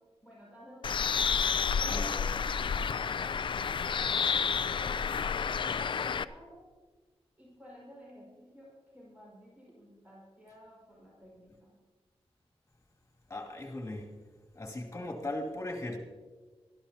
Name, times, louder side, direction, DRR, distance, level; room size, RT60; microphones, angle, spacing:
voice 1, 0.0-3.4 3.8-6.7 7.4-11.8, equal, 15° right, -6 dB, 5.7 m, -53 dB
Bird, 0.8-6.2, left 6 dB, 55° left, 0.4 m, -30 dB
voice 2, 13.3-14.1 14.5-16.0, left 1 dB, 25° left, 0 dB, 2.6 m, -38 dB
23.0 x 13.5 x 2.9 m, 1.4 s
wide cardioid pair, 140°, 10 cm